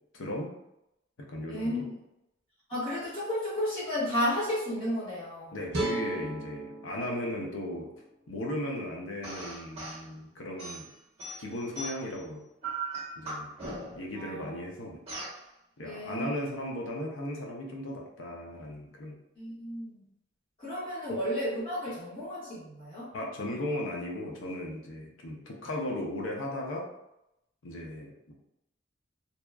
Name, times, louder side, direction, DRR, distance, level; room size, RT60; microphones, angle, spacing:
voice 1, 0.1-0.5 1.3-1.9 5.5-7.9 8.3-10.9 11.4-12.4 13.2-13.5 13.9-15.0 15.8-19.2 21.1-21.2 23.1-26.8 27.6-28.3, left 1 dB, 80° left, 0 dB, 0.5 m, -36 dB
voice 2, 1.5-1.9 2.7-5.6 14.1-14.6 15.8-16.3 19.4-20.0 20.6-23.1, left 1 dB, 25° left, -12 dB, 1.2 m, -32 dB
sound 1, 5.7-8.9, right 1 dB, 60° right, 0.7 m, -37 dB
sound 2, 9.2-10.0 10.6-12.2 12.6-14.1 15.1-15.4, right 2 dB, 30° right, 1.0 m, -38 dB
2.7 x 2.3 x 2.3 m, 0.85 s
head